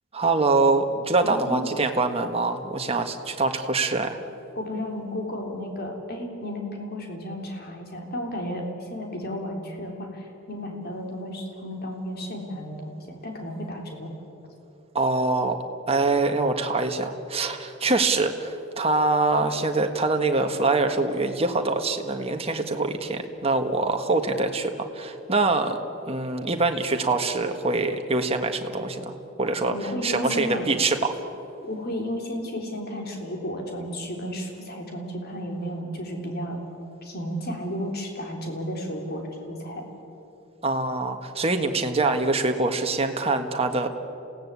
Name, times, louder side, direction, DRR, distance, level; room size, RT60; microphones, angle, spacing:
voice 1, 0.1-4.2 14.9-15.6 15.9-25.8 26.1-29.7 30.0-31.1 40.6-43.9, right 3 dB, 30° right, 5 dB, 1.6 m, -24 dB
voice 2, 1.2-1.7 4.6-14.1 29.6-30.7 31.6-36.6 37.0-39.8, equal, 50° left, 1 dB, 3.6 m, -33 dB
27.5 x 17.0 x 8.4 m, 3.0 s
head